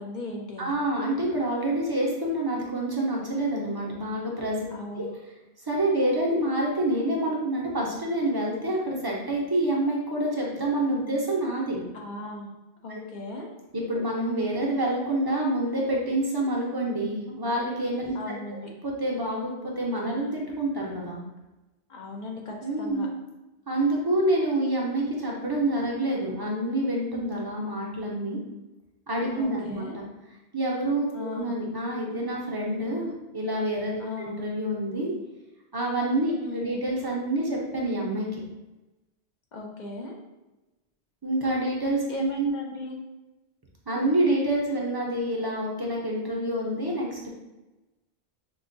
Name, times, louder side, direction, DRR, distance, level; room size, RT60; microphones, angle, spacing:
voice 1, 0.0-0.7 4.7-5.1 11.9-12.5 12.8-13.5 18.1-18.7 21.9-23.1 29.4-30.0 31.1-31.5 34.0-34.4 36.4-36.8 39.5-40.2 42.1-43.0, left 2 dB, 55° left, 0 dB, 0.6 m, -37 dB
voice 2, 0.6-4.6 5.0-5.1 5.7-11.8 12.9-13.0 13.7-18.1 18.8-21.2 22.6-23.1 23.7-28.4 29.1-30.0 30.5-35.2 35.7-38.3 41.2-42.5 43.9-47.3, right 1 dB, 30° right, -3 dB, 0.5 m, -27 dB
4.6 x 2.2 x 2.6 m, 1.0 s
omnidirectional pair, 1.1 m